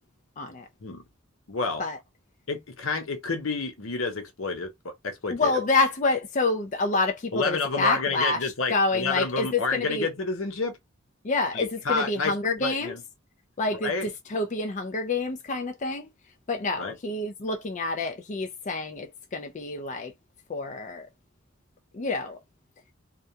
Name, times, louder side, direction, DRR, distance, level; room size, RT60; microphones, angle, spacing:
voice 1, 0.4-0.7 1.8-2.0 5.3-10.1 11.2-12.9 13.6-13.9 14.3-16.1 16.5-20.1 20.5-21.1 21.9-22.4, left 3 dB, 35° left, 0.4 m, -27 dB
voice 2, 1.5-1.8 2.5-5.5 7.3-10.8 11.5-12.3 12.6-13.0 13.7-14.1 16.8-17.0, left 4 dB, 80° left, 0.8 m, -29 dB
2.4 x 2.2 x 2.7 m
head